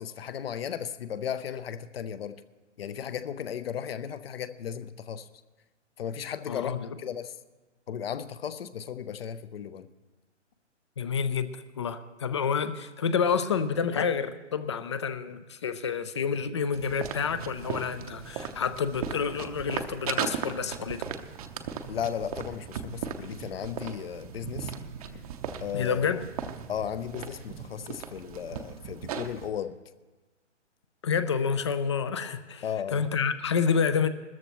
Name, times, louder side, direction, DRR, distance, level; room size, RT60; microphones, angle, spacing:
voice 1, 0.0-2.4 2.8-5.2 6.0-7.3 7.9-9.9 21.9-24.7 25.6-26.1 26.7-29.8 32.6-33.0, left 8 dB, 55° left, 0.7 m, -35 dB
voice 2, 6.5-7.0 11.0-21.1 25.7-26.3 31.0-34.1, left 6 dB, 25° left, 0.4 m, -29 dB
sound 1, 16.7-29.5, right 7 dB, 30° right, 0.7 m, -37 dB
20.5 x 13.5 x 3.0 m
figure-of-eight pair, 135°, 36 cm